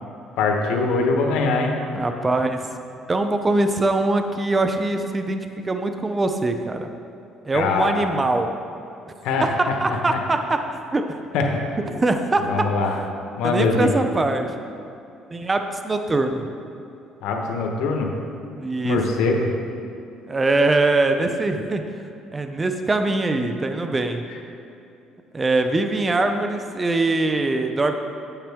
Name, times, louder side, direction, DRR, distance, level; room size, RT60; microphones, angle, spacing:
voice 1, 0.4-1.7 7.5-8.1 9.2-10.2 11.3-11.4 12.4-13.0 13.4-13.9 17.2-18.1 18.8-19.5, left 4 dB, 85° left, 2 dB, 1.2 m, -22 dB
voice 2, 1.9-2.6 3.1-6.9 7.5-8.5 9.4-10.6 10.9-11.1 11.9-12.7 13.4-14.5 15.3-16.5 18.6-19.0 20.3-21.8 22.3-24.2 25.3-27.9, right 2 dB, 20° right, 6 dB, 0.5 m, -22 dB
8.8 x 8.3 x 3.5 m, 2.6 s
cardioid pair, 125°, 0 cm